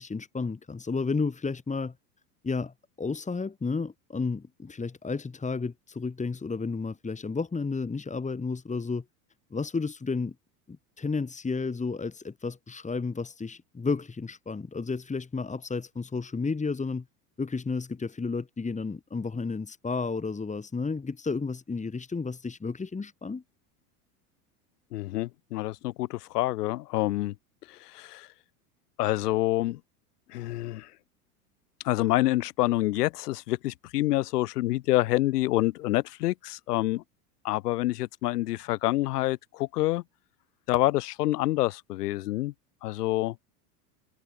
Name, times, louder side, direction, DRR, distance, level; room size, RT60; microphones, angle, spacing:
voice 1, 0.0-1.9 2.4-9.0 9.5-10.3 10.7-17.0 17.4-23.4, left 4 dB, 15° left, 4.5 m, -32 dB
voice 2, 24.9-27.3 27.7-28.3 29.0-29.8 30.3-30.9 31.8-37.0 37.4-40.0 40.7-42.5 42.8-43.3, left 17 dB, 80° left, 1.0 m, -27 dB
hypercardioid pair, 95°, 46 cm